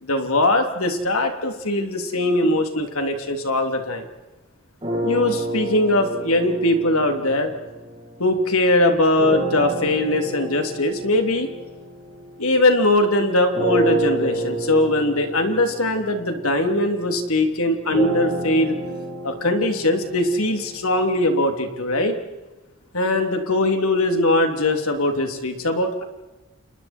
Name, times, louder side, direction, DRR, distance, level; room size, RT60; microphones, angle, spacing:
voice 1, 0.0-4.1 5.0-7.5 8.2-11.5 12.4-18.8 19.2-22.1 22.9-26.0, left 1 dB, 75° left, 5 dB, 3.2 m, -21 dB
sound 1, 4.8-8.4 9.2-13.0 13.5-21.5, right 1 dB, 25° right, 7.4 m, -30 dB
29.5 x 29.5 x 4.5 m, 1.1 s
head